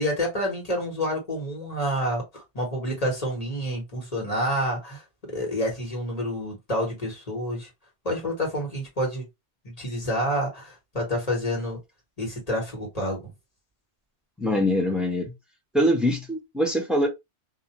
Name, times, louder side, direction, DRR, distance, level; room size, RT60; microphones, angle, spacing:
voice 1, 0.0-7.7 8.0-9.2 9.6-11.8 12.2-13.3, equal, 35° left, 1.3 m, -28 dB
voice 2, 14.4-15.3 15.7-17.1, equal, ahead, 0.4 m, -23 dB
2.4 x 2.2 x 2.8 m
omnidirectional pair, 1.1 m